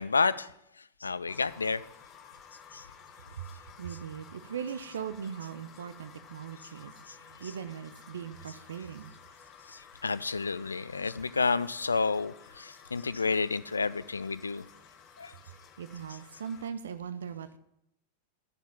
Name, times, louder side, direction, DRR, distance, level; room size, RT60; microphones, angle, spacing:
voice 1, 0.0-1.8 2.7-2.9 7.1-7.2 7.4-7.5 9.7-14.6 15.2-15.3, left 4 dB, 75° left, 18 dB, 0.4 m, -30 dB
sound 1, 1.3-16.7, left 7 dB, 30° left, 1.1 m, -54 dB
voice 2, 3.8-9.1 15.5-17.6, right 7 dB, 65° right, 12 dB, 0.6 m, -40 dB
11.5 x 7.2 x 7.0 m, 0.79 s
figure-of-eight pair, 90°, 0 cm